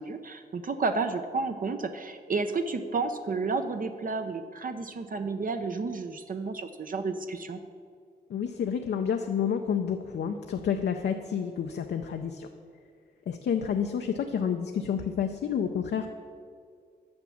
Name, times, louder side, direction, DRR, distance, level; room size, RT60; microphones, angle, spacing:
voice 1, 0.0-7.6, right 4 dB, 55° right, 7 dB, 0.6 m, -31 dB
voice 2, 8.3-12.5 13.3-16.1, left 7 dB, 90° left, 4 dB, 0.5 m, -29 dB
8.7 x 6.2 x 7.1 m, 2.2 s
cardioid pair, 70°, 17 cm